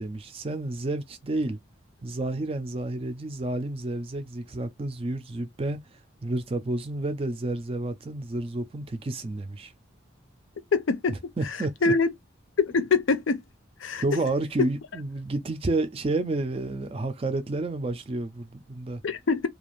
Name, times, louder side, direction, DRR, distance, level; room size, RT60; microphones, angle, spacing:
voice 1, 0.0-1.6 2.0-5.8 6.2-9.7 11.1-11.9 14.0-19.0, right 2 dB, 30° right, 0.3 m, -30 dB
voice 2, 10.7-11.2 11.8-12.1 12.6-13.4 13.8-14.0 19.0-19.5, left 4 dB, 70° left, 0.5 m, -24 dB
2.5 x 2.4 x 3.0 m
head